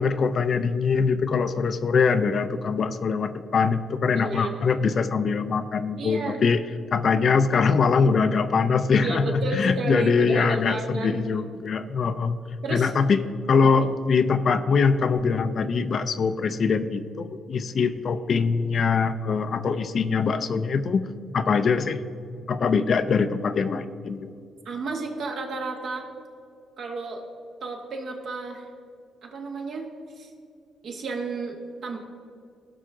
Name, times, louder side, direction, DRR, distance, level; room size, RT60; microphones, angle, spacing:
voice 1, 0.0-6.6 6.9-12.4 12.7-21.0 21.3-22.0 22.5-24.3, left 5 dB, 50° left, 11 dB, 0.5 m, -23 dB
voice 2, 4.1-4.5 6.0-6.4 9.0-11.2 12.6-12.9 24.7-26.1 26.8-27.2 27.6-28.7 29.2-29.9 30.2-30.3 30.8-32.0, right 3 dB, 65° right, 1 dB, 1.7 m, -32 dB
16.5 x 5.7 x 3.7 m, 2.4 s
cardioid pair, 90°, 0 cm